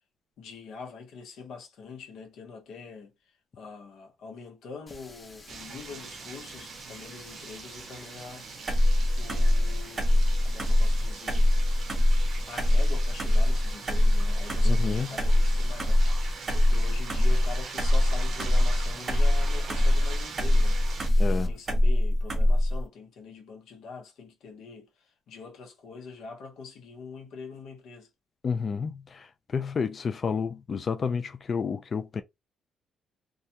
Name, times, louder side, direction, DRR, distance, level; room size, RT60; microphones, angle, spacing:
voice 1, 0.4-3.1 3.6-8.7 9.2-11.5 12.5-28.1, left 5 dB, 80° left, 0.9 m, -44 dB
Water tap faucet, 4.9-21.5, left 2 dB, 20° left, 0.8 m, -51 dB
sound 1, 5.5-21.1, right 5 dB, 60° right, 0.5 m, -43 dB
sound 2, 8.7-22.8, left 1 dB, 35° right, 0.9 m, -23 dB
voice 2, 14.6-15.1 21.2-21.5 28.4-29.3 29.5-32.2, left 5 dB, 45° left, 0.3 m, -30 dB
2.4 x 2.2 x 2.7 m
cardioid pair, 90°, 0 cm